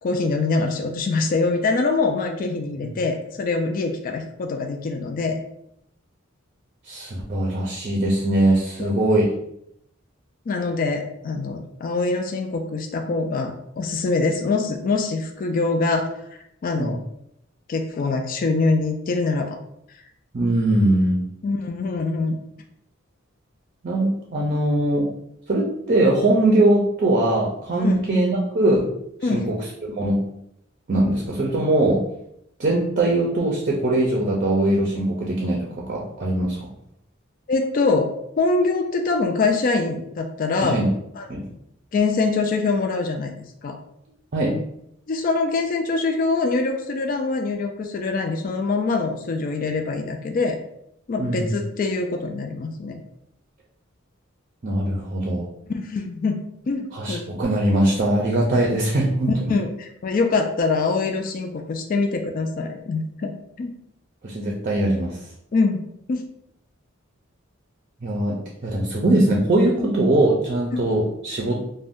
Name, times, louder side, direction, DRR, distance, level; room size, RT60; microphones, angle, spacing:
voice 1, 0.0-5.4 8.8-9.0 10.5-17.0 17.7-19.6 21.4-22.4 27.8-28.0 29.2-29.5 37.5-40.8 41.2-41.3 41.9-43.8 45.1-50.6 51.1-53.0 55.7-56.4 56.7-57.3 59.3-63.3 63.6-63.7 65.5-65.8 66.1-66.2, left 3 dB, 45° left, 4 dB, 0.3 m, -24 dB
voice 2, 6.9-9.3 16.8-16.9 20.3-21.3 23.8-25.1 25.5-28.9 29.2-29.6 29.8-30.2 30.9-32.0 32.6-36.5 40.6-40.9 41.3-41.4 44.3-44.5 51.2-51.6 54.6-55.5 56.9-59.5 64.2-65.2 68.0-71.6, right 1 dB, 40° right, -2 dB, 0.5 m, -21 dB
2.5 x 2.1 x 3.5 m, 0.75 s
head